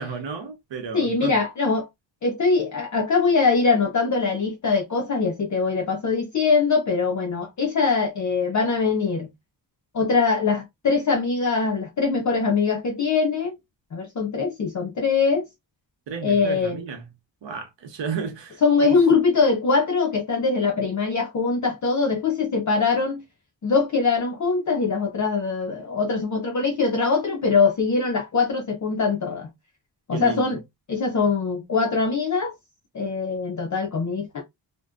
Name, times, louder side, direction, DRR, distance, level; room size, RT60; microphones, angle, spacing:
voice 1, 0.0-1.4 16.1-17.1 17.4-18.6 30.1-30.6, right 5 dB, 70° right, 0.9 m, -33 dB
voice 2, 0.9-1.9 2.2-9.3 9.9-13.6 13.9-15.5 16.2-16.8 18.6-23.2 23.6-29.5 30.1-30.6 30.9-32.5 32.9-34.4, left 4 dB, 40° left, 0.6 m, -22 dB
2.5 x 2.2 x 2.3 m
cardioid pair, 75°, 45 cm